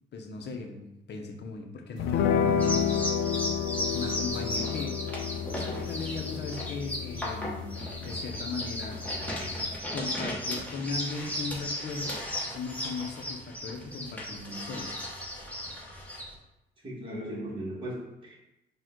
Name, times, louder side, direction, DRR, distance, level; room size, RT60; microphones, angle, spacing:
voice 1, 0.1-2.9 3.9-5.2 5.5-9.0 9.9-14.9, left 4 dB, 60° left, 3 dB, 0.8 m, -38 dB
sound 1, 2.0-9.8, left 8 dB, 85° left, 0.4 m, -31 dB
sound 2, 2.6-16.3, equal, 5° left, 1.1 m, -35 dB
voice 2, 16.8-18.4, right 1 dB, 25° right, -6 dB, 1.5 m, -37 dB
5.0 x 2.4 x 3.7 m, 0.91 s
cardioid pair, 90°, 20 cm